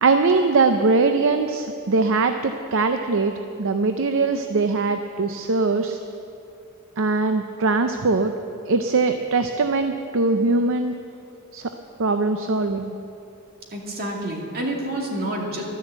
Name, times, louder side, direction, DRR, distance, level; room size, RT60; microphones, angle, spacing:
voice 1, 0.0-3.3 3.6-6.0 7.0-8.3 8.7-10.9 11.5-11.7 12.0-12.9, right 3 dB, 65° right, 7 dB, 0.6 m, -21 dB
voice 2, 13.7-15.6, right 1 dB, 45° right, 0 dB, 2.3 m, -28 dB
12.0 x 10.5 x 8.0 m, 2.7 s
head